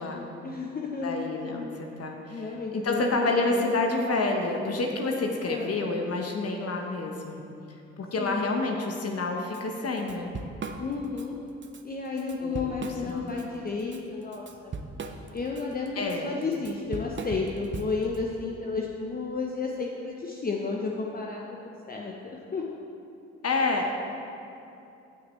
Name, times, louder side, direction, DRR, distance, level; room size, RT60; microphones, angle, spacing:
voice 1, 0.4-1.2 2.3-3.6 5.2-6.0 8.2-8.6 10.8-11.3 11.8-14.7 15.3-22.7, left 4 dB, 30° left, -1 dB, 0.9 m, -32 dB
voice 2, 1.0-2.4 2.7-7.4 8.0-10.4 12.4-12.7 13.0-13.3 16.0-16.3 23.4-23.9, left 3 dB, 50° left, 2 dB, 1.2 m, -28 dB
Drum kit / Drum, 9.5-9.6 10.0-11.3 11.6-11.8 12.2-13.4 13.8-18.2, right 4 dB, 35° right, 0.8 m, -38 dB
16.5 x 5.9 x 3.3 m, 2.7 s
hypercardioid pair, 45°, 32 cm